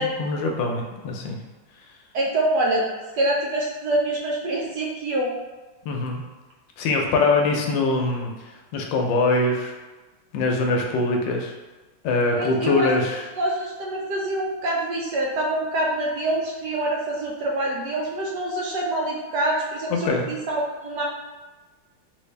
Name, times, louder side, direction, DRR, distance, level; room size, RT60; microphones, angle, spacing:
voice 1, 0.0-1.4 5.8-6.2 6.8-8.3 8.7-9.7 10.3-11.5 12.0-13.3 20.0-20.3, left 3 dB, 80° left, 1 dB, 1.3 m, -23 dB
voice 2, 2.1-2.9 3.1-5.3 12.4-12.9 13.4-21.0, right 1 dB, 70° right, -2 dB, 1.1 m, -25 dB
3.4 x 2.6 x 3.2 m, 1.2 s
omnidirectional pair, 2.1 m